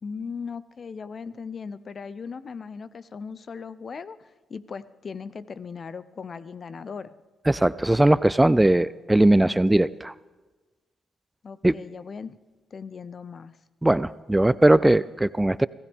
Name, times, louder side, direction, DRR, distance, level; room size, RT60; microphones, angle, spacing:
voice 1, 0.0-7.1 11.4-12.4 12.7-13.6, left 5 dB, 50° left, 15 dB, 0.7 m, -38 dB
voice 2, 7.5-10.1 11.6-11.8 13.8-15.7, right 1 dB, 15° right, 18 dB, 0.4 m, -19 dB
25.0 x 15.5 x 3.6 m, 1.2 s
supercardioid pair, 50°, 0 cm